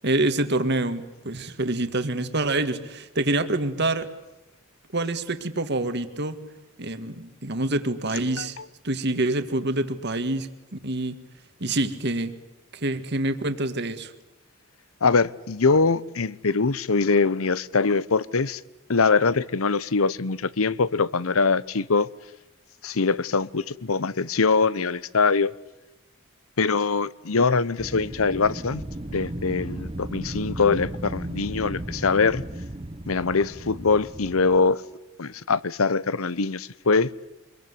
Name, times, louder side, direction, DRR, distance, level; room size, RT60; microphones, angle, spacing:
voice 1, 0.0-4.1 4.9-6.4 6.8-8.6 8.8-11.2 11.6-12.4 12.7-14.1, right 2 dB, 55° right, 1.9 m, -26 dB
voice 2, 15.0-18.6 18.9-22.1 22.8-25.5 26.6-28.8 29.1-32.4 33.1-34.8 35.2-37.1, left 4 dB, 85° left, 0.9 m, -23 dB
Wind, 27.8-34.7, right 1 dB, 25° right, 1.2 m, -35 dB
25.5 x 22.0 x 9.7 m
head